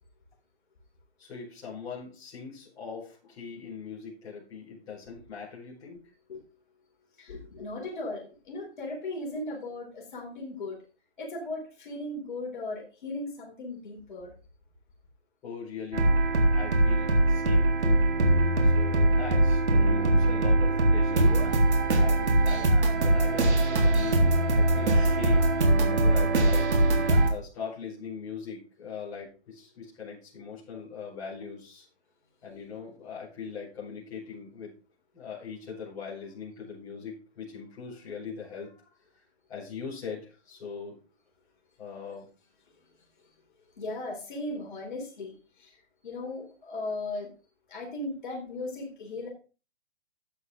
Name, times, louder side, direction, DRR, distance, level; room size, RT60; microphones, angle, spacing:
voice 1, 1.2-6.0 15.4-16.2 16.5-18.1 18.6-21.4 22.0-31.9 32.4-34.7 35.1-38.9 39.5-41.0 41.8-42.2, left 6 dB, 10° left, -9 dB, 4.7 m, -41 dB
voice 2, 7.2-10.8 11.2-14.3 43.2-43.3 43.8-45.8 46.0-47.3 47.7-49.3, left 2 dB, 45° left, -1 dB, 4.0 m, -37 dB
sound 1, 15.9-27.3, right 2 dB, 90° right, 3.7 m, -22 dB
12.5 x 8.3 x 3.8 m, 0.35 s
hypercardioid pair, 180°, 33 cm